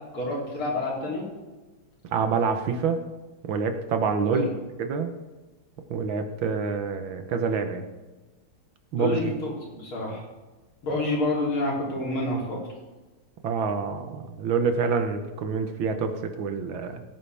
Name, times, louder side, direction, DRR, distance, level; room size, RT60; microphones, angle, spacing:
voice 1, 0.1-1.3 4.3-4.5 9.0-10.2 10.8-12.6, left 2 dB, 80° left, -4 dB, 4.3 m, -28 dB
voice 2, 2.1-3.0 3.4-4.5 4.8-5.1 5.9-7.9 8.9-9.3 13.4-17.0, right 5 dB, 70° right, 7 dB, 1.8 m, -27 dB
17.5 x 9.9 x 3.5 m, 1.2 s
omnidirectional pair, 2.3 m